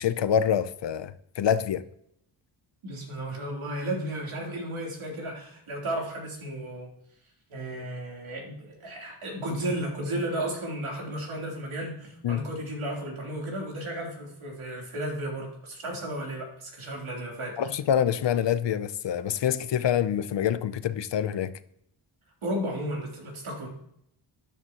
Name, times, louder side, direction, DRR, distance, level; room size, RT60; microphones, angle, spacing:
voice 1, 0.0-1.8 12.2-12.4 17.6-21.5, left 9 dB, 60° left, 0.6 m, -26 dB
voice 2, 2.8-6.9 7.5-17.7 22.4-23.7, right 1 dB, 70° right, 3.4 m, -34 dB
12.5 x 10.0 x 2.9 m
wide cardioid pair, 105°, 50 cm